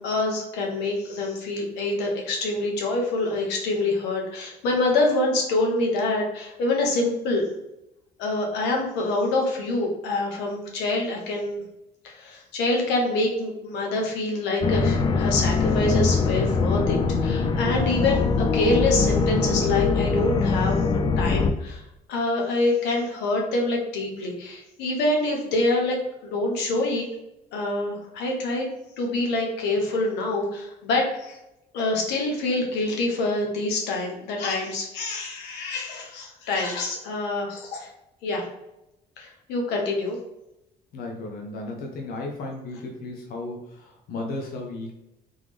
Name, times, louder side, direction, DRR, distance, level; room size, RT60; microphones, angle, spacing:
voice 1, 0.0-7.5 8.2-11.6 12.0-20.8 21.2-21.8 22.1-27.1 27.5-28.7 29.0-31.4 31.7-37.9 38.2-38.4 39.2-40.2, left 2 dB, 90° left, 0 dB, 1.1 m, -26 dB
sound 1, 14.6-21.5, left 4 dB, 30° left, 0.3 m, -22 dB
voice 2, 40.9-44.9, left 2 dB, 65° left, 0 dB, 0.8 m, -34 dB
3.7 x 3.3 x 3.4 m, 0.89 s
cardioid pair, 110°, 17 cm